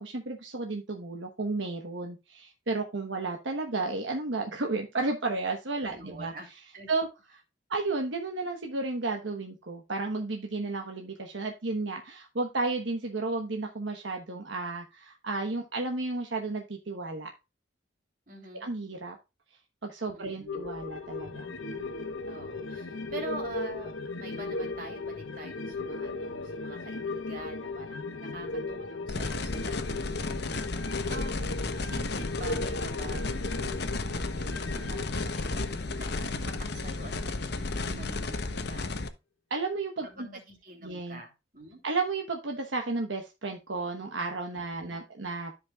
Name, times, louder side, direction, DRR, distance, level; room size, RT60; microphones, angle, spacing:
voice 1, 0.0-6.3 6.9-7.1 7.7-17.3 18.5-19.2 19.8-21.5 37.9-38.1 39.5-40.3 40.8-41.2 41.8-45.5, right 3 dB, 70° right, 3 dB, 1.1 m, -33 dB
voice 2, 5.9-6.5 6.7-6.9 18.3-18.7 20.1-20.7 22.2-23.9 24.2-30.7 31.1-39.1 40.0-41.8 44.8-45.0, right 2 dB, 45° right, 2 dB, 3.0 m, -46 dB
sound 1, 20.5-37.3 37.6-37.7, left 3 dB, 80° left, 1.0 m, -37 dB
sound 2, 29.1-39.1, left 3 dB, 55° left, 0.9 m, -33 dB
13.5 x 5.2 x 2.4 m, 0.26 s
head